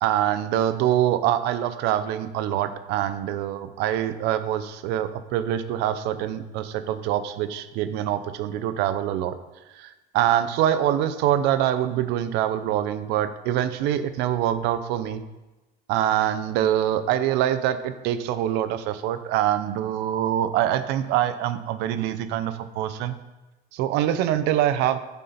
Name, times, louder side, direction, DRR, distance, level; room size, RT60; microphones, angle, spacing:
voice 1, 0.0-9.3 9.7-15.2 15.9-23.1 23.7-25.0, right 11 dB, 65° right, 11 dB, 0.7 m, -24 dB
9.5 x 7.1 x 4.3 m, 1.1 s
cardioid pair, 165°, 19 cm